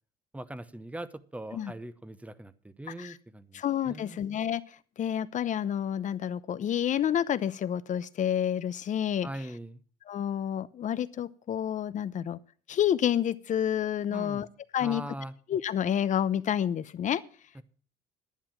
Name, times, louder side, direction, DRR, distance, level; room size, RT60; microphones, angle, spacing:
voice 1, 0.3-4.2 9.2-9.8 14.1-14.5 14.8-15.3 17.5-17.6, right 1 dB, 10° right, 15 dB, 0.9 m, -41 dB
voice 2, 3.5-4.6 5.0-9.3 10.1-12.4 12.7-14.5 14.7-15.0 15.5-17.2, left 10 dB, 45° left, 17 dB, 0.7 m, -29 dB
11.0 x 10.5 x 5.9 m, 0.42 s
cardioid pair, 110°, 17 cm